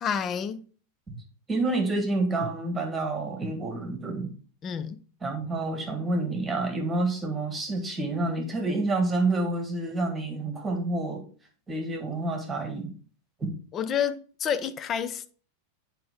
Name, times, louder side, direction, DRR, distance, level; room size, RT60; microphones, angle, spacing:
voice 1, 0.0-0.6 4.6-5.0 13.7-15.3, left 8 dB, 30° left, 0.6 m, -29 dB
voice 2, 1.5-4.3 5.2-11.2 11.7-12.9 13.4-13.5, right 2 dB, 15° right, 1.7 m, -28 dB
8.7 x 4.9 x 3.5 m
figure-of-eight pair, 90°, 0 cm